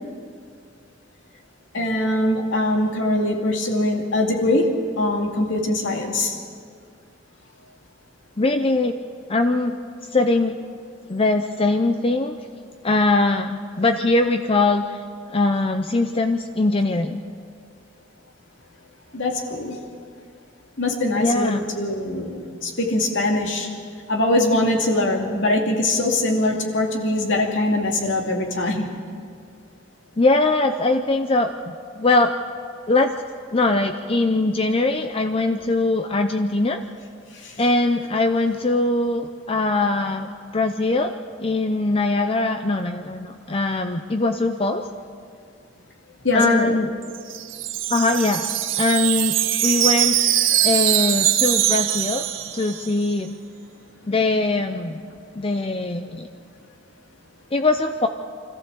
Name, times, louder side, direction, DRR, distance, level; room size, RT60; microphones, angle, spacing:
voice 1, 1.7-6.4 19.1-19.8 20.8-23.7 24.1-28.9 37.3-37.5 46.2-46.8, left 1 dB, 70° left, 1 dB, 2.5 m, -22 dB
voice 2, 8.4-9.0 9.3-9.8 10.1-10.6 11.1-12.4 12.8-15.0 15.3-17.2 21.1-21.6 30.2-32.3 32.9-33.1 33.5-36.8 37.6-44.9 46.3-46.9 47.9-48.4 48.8-49.4 49.6-50.2 50.6-52.3 52.5-53.3 54.1-55.0 55.4-56.3 57.5-58.1, left 2 dB, 30° left, 7 dB, 0.6 m, -21 dB
Wind chime, 47.0-53.0, right 12 dB, 75° right, 1.0 m, -22 dB
25.0 x 14.5 x 7.1 m, 2.2 s
head